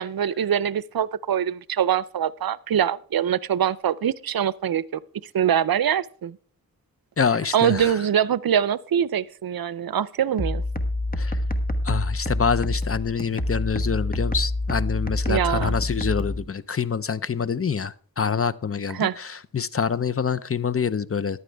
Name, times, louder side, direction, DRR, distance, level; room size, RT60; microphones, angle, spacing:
voice 1, 0.0-4.8 5.3-6.4 7.5-10.6 15.3-15.8 18.9-19.2, right 9 dB, 75° right, 20 dB, 0.6 m, -23 dB
voice 2, 7.2-8.0 11.2-11.4 11.8-21.4, left 6 dB, 40° left, 14 dB, 0.6 m, -26 dB
sound 1, 10.4-16.4, left 1 dB, 25° left, 1.3 m, -26 dB
14.5 x 11.0 x 3.4 m, 0.44 s
wide cardioid pair, 85°, 36 cm